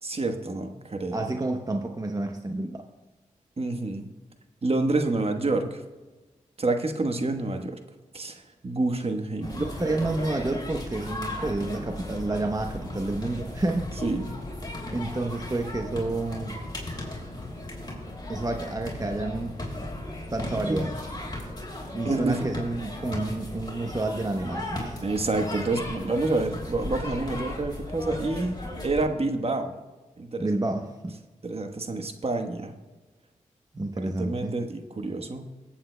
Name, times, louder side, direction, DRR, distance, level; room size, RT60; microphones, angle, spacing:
voice 1, 0.0-1.2 3.6-4.1 4.6-5.8 6.6-7.8 8.1-9.6 14.0-14.4 20.5-20.8 22.0-22.5 25.0-28.6 28.8-29.7 30.2-30.6 31.4-32.7 33.8-35.4, right 2 dB, 45° right, 6 dB, 1.2 m, -28 dB
voice 2, 1.1-2.8 9.6-13.9 14.9-16.5 18.3-19.5 20.3-20.9 21.9-25.0 30.4-31.1 33.7-34.5, right 2 dB, 25° right, 4 dB, 0.9 m, -29 dB
sound 1, 9.4-29.0, left 1 dB, 30° left, 4.0 m, -36 dB
21.0 x 8.6 x 2.2 m, 1.2 s
cardioid pair, 45°, 14 cm